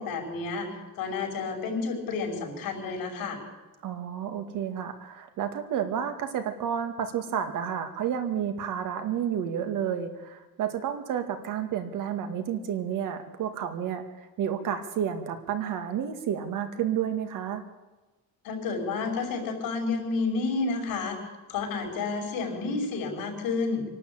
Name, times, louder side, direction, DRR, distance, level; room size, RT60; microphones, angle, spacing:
voice 1, 0.0-3.4 18.4-21.2 21.5-23.8, left 4 dB, 85° left, 3 dB, 5.6 m, -30 dB
voice 2, 3.8-17.6, right 8 dB, 65° right, 7 dB, 2.1 m, -31 dB
24.5 x 12.0 x 8.7 m, 1.2 s
cardioid pair, 175°, 34 cm